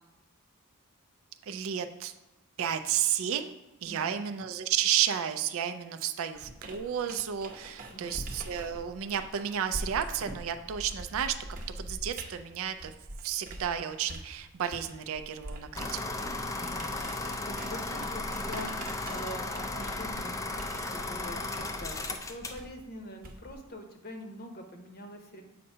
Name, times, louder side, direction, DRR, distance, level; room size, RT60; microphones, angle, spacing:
voice 1, 1.4-2.1 2.6-3.6 3.8-11.4 11.8-12.9 13.2-16.2, right 9 dB, 65° right, 9 dB, 0.4 m, -32 dB
voice 2, 3.9-4.2 7.9-8.2 16.5-16.9 17.1-25.4, left 1 dB, 45° left, 4 dB, 0.8 m, -44 dB
sound 1, 6.4-13.7 14.1-23.7, right 1 dB, 40° right, 0.7 m, -44 dB
sound 2, 15.7-22.6, left 2 dB, 15° left, 0.4 m, -35 dB
7.5 x 2.7 x 5.4 m, 1.1 s
head